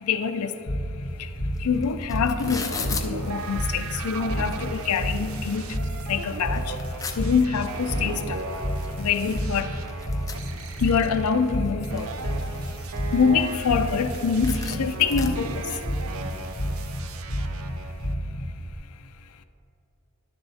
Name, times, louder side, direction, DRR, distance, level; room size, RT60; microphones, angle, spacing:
voice 1, 0.1-0.5 1.6-5.6 6.1-6.6 7.2-8.4 9.0-9.7 10.8-12.1 13.1-15.5, left 6 dB, 85° left, 10 dB, 0.5 m, -25 dB
sound 1, 0.7-18.7, equal, 45° left, 0.8 m, -31 dB
sound 2, 1.6-1.7 1.8-3.1 3.9-4.0 4.4-5.2 5.6-5.7 6.1-7.2 8.4-8.5 8.8-8.9 9.1-11.1 11.5-12.2 12.7-13.9 14.1-14.2 14.4-15.3, left 5 dB, 15° left, 0.4 m, -36 dB
sound 3, 2.4-18.1, right 3 dB, 70° right, 0.5 m, -38 dB
11.5 x 6.8 x 2.8 m, 2.9 s
head